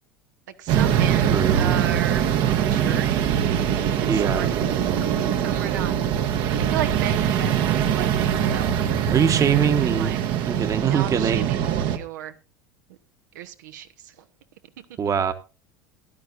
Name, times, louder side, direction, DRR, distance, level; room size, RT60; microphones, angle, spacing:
voice 1, 0.6-3.1 4.0-4.6 5.0-5.1 5.4-6.0 6.5-8.9 9.3-10.3 10.8-12.4 12.9-13.0 13.3-14.3, right 10 dB, 70° right, 1.0 m, -34 dB
sound 1, 0.7-12.0, right 9 dB, 50° right, 1.2 m, -22 dB
voice 2, 1.3-1.8 4.1-4.5 9.1-10.1 10.5-11.5 15.0-15.3, right 7 dB, 30° right, 1.3 m, -23 dB
15.5 x 11.5 x 2.6 m
figure-of-eight pair, 75°, 10 cm